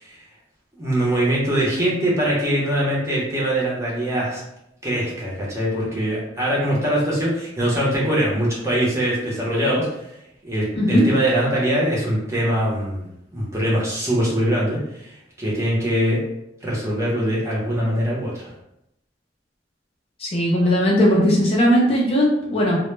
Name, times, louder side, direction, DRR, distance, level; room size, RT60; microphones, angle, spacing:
voice 1, 0.8-4.4 4.8-9.9 10.4-13.1 13.3-15.1 15.4-16.2 16.6-18.5, right 1 dB, 15° right, -5 dB, 0.7 m, -22 dB
voice 2, 20.2-22.8, equal, 35° left, -3 dB, 0.4 m, -18 dB
2.1 x 2.1 x 3.1 m, 0.82 s
head